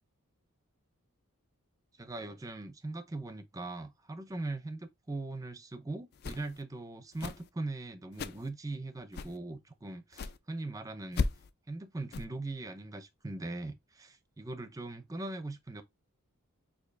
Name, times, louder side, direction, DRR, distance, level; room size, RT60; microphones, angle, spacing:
voice 1, 2.0-11.3 11.7-15.8, right 2 dB, 15° right, 0.5 m, -40 dB
swishes with feather, 6.1-6.6 7.1-7.5 8.1-8.5 9.1-9.4 10.1-10.4 11.1-11.5 12.1-12.3, left 4 dB, 45° left, 0.3 m, -36 dB
6.6 x 2.7 x 2.5 m
head